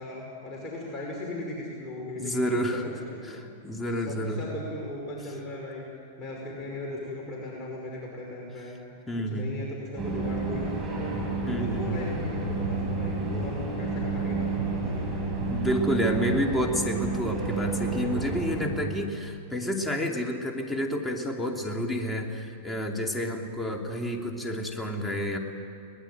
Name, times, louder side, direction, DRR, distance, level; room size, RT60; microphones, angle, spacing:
voice 1, 0.0-3.4 3.9-5.8 6.2-8.8 9.3-11.0 11.5-15.2, left 2 dB, 30° left, -2 dB, 5.4 m, -38 dB
voice 2, 2.2-2.9 3.2-4.4 9.1-9.5 11.5-12.0 15.5-25.4, equal, 10° left, 2 dB, 2.7 m, -29 dB
sound 1, 10.0-18.8, right 3 dB, 25° right, 7.6 m, -30 dB
23.0 x 19.5 x 9.3 m, 2.5 s
hypercardioid pair, 115°, 0 cm